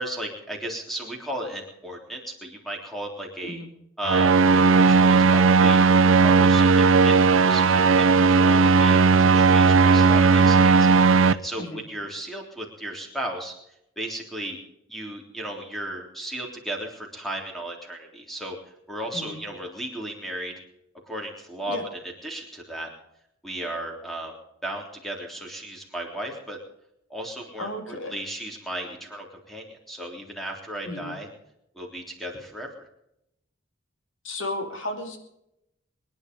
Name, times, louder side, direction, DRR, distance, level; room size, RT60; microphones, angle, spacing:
voice 1, 0.0-3.6 4.0-5.8 6.2-13.5 14.0-14.6 14.9-18.6 18.9-20.5 21.1-21.8 22.2-22.9 23.4-24.3 24.6-26.6 27.1-31.3 31.7-32.9, right 1 dB, ahead, 1 dB, 3.5 m, -35 dB
sound 1, 4.0-11.3, right 4 dB, 80° right, 0.6 m, -16 dB
voice 2, 27.6-28.1 30.9-31.1 34.2-35.2, left 1 dB, 70° left, 5 dB, 2.9 m, -33 dB
23.5 x 10.5 x 5.4 m, 0.82 s
head